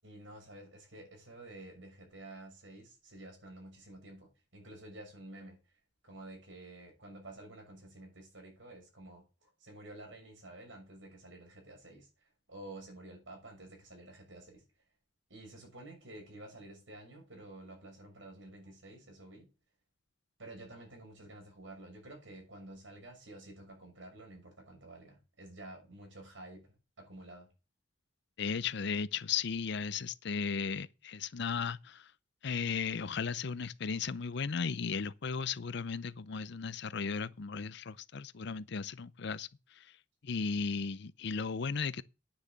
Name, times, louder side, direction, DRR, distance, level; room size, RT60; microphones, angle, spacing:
voice 1, 0.0-5.8 6.0-14.6 15.3-19.5 20.4-27.5, right 1 dB, 85° right, 6.5 m, -51 dB
voice 2, 28.4-32.1 32.4-39.9 40.2-42.0, left 5 dB, 65° left, 0.6 m, -36 dB
9.8 x 6.6 x 7.3 m
head